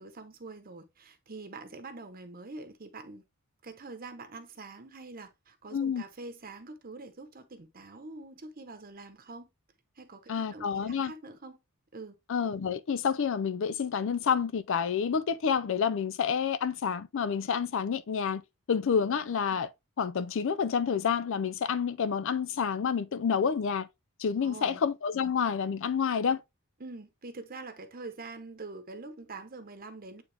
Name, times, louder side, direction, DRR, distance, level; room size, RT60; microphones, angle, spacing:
voice 1, 0.0-3.2 3.6-9.5 10.0-11.6 11.9-12.1 24.4-24.8 26.8-30.2, right 3 dB, 45° right, 0.9 m, -45 dB
voice 2, 5.7-6.0 10.3-11.1 12.3-18.4 18.7-19.7 20.0-23.9 24.2-26.4, left 6 dB, 65° left, 0.4 m, -29 dB
8.9 x 3.6 x 3.3 m
head